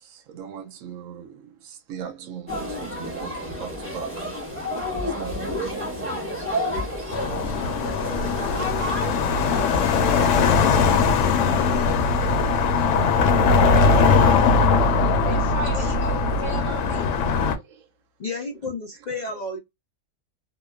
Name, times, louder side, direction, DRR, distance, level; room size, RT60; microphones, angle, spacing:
voice 1, 0.0-4.3 5.0-5.7 13.8-14.5 15.7-15.9 16.8-16.9 17.5-17.9 19.1-19.4, right 8 dB, 70° right, 1.0 m, -40 dB
sound 1, 2.5-10.5, equal, 10° right, 0.8 m, -30 dB
sound 2, 7.1-17.6, left 4 dB, 70° left, 0.8 m, -20 dB
voice 2, 15.2-17.2, right 4 dB, 35° right, 1.3 m, -35 dB
voice 3, 18.2-19.6, left 3 dB, 85° left, 0.3 m, -31 dB
2.9 x 2.0 x 2.3 m
omnidirectional pair, 1.5 m